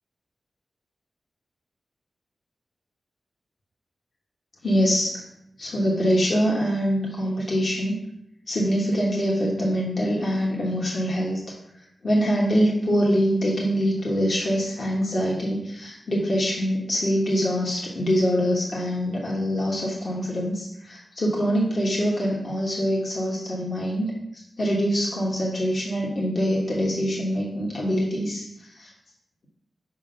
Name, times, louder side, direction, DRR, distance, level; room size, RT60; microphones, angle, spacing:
voice 1, 4.6-5.2 5.6-8.0 8.5-11.5 12.0-28.9, equal, 65° left, -3 dB, 1.3 m, -24 dB
5.6 x 3.6 x 5.5 m, 0.80 s
cardioid pair, 55°, 0 cm